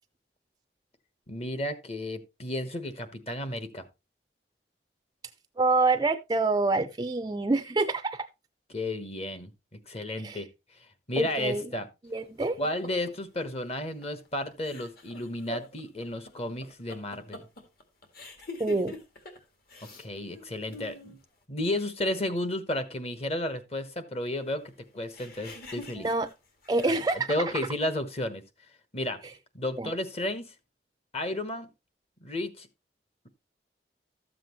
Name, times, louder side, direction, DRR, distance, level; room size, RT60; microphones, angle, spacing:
voice 1, 1.3-3.9 8.7-9.5 9.9-10.5 11.1-11.9 12.6-17.4 20.0-21.2 21.5-24.6 24.9-26.1 26.9-27.0 27.3-28.4 28.9-29.2 29.5-30.5 31.1-31.7 32.2-32.7, left 1 dB, 35° left, 1.1 m, -32 dB
voice 2, 5.6-8.3 10.2-10.4 11.2-11.6 12.1-12.6 18.6-19.0 26.0-26.3 26.7-27.3 29.8-29.9, right 3 dB, 20° right, 0.4 m, -26 dB
sound 1, 12.2-13.1 14.0-14.3 14.5-19.4 19.7-20.1 20.3-21.2 25.1-27.3, left 2 dB, 55° left, 2.2 m, -45 dB
13.0 x 7.6 x 3.0 m
head